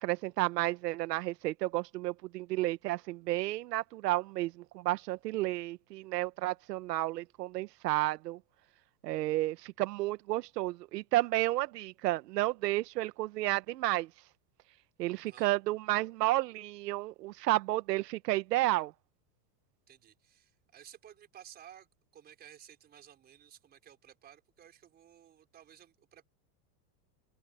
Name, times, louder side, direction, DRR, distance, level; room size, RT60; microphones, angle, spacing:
voice 1, 0.0-8.4 9.0-14.1 15.0-18.9, right 17 dB, 75° right, 1.4 m, -31 dB
voice 2, 19.9-26.2, right 10 dB, 20° right, 5.4 m, -55 dB
open air
supercardioid pair, 180°, 49 cm